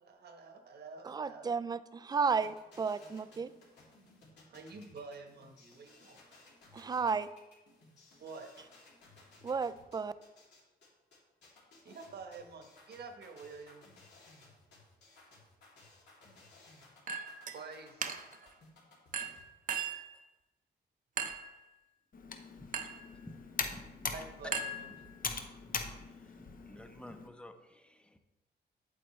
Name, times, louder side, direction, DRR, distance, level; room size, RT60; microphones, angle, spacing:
voice 1, 0.0-1.6 4.5-6.2 8.2-8.5 11.8-13.8 17.5-18.1 24.1-25.1, right 4 dB, 65° right, 5 dB, 1.2 m, -48 dB
voice 2, 1.1-3.5 6.7-7.3 9.4-10.1, right 5 dB, 25° right, 15 dB, 0.4 m, -33 dB
sound 1, 2.4-19.4, left 3 dB, 80° left, 2.8 m, -60 dB
Chink clink, 17.1-17.6 18.0-18.5 19.1-20.1 21.2-21.6 22.7-23.1 24.5-25.3, right 5 dB, 50° right, 0.7 m, -38 dB
Computer keyboard, 22.1-27.3, left 5 dB, 55° left, 0.9 m, -41 dB
voice 3, 22.5-24.1 24.7-28.2, left 1 dB, 5° left, 8 dB, 0.7 m, -55 dB
8.7 x 7.9 x 3.2 m, 1.0 s
cardioid pair, 100°, 18 cm